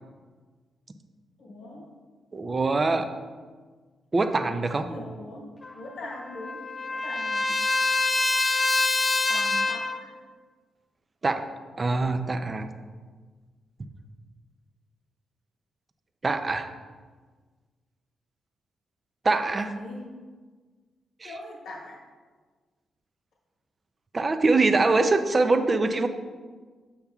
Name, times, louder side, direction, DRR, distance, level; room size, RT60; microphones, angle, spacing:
voice 1, 1.4-1.9 4.9-7.6 9.3-10.2 19.5-20.2 21.2-22.0, left 1 dB, 75° left, -1 dB, 1.2 m, -41 dB
voice 2, 2.3-3.1 4.1-4.9 11.2-11.5 11.8-12.7 16.2-16.7 19.2-19.7 21.2-21.3 24.1-26.1, right 3 dB, 35° right, 8 dB, 0.5 m, -23 dB
Trumpet, 5.6-10.0, left 3 dB, 25° left, 0.5 m, -26 dB
7.1 x 6.7 x 2.3 m, 1.5 s
cardioid pair, 85°, 0 cm